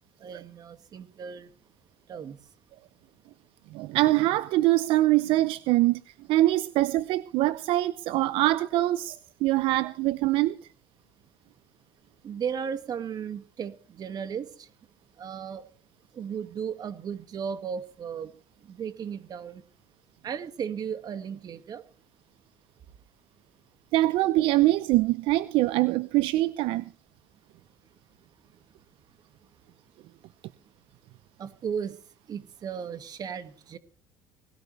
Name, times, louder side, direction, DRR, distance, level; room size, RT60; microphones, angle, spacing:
voice 1, 0.2-1.5 2.1-2.4 12.2-14.7 15.2-15.7 16.1-18.3 18.7-19.6 20.2-21.8 31.4-32.0 32.3-33.8, right 7 dB, 45° right, 2.2 m, -35 dB
voice 2, 3.7-6.0 6.3-10.6 23.9-26.8, right 17 dB, 70° right, 0.8 m, -23 dB
19.0 x 17.5 x 3.4 m
supercardioid pair, 100°, 9 cm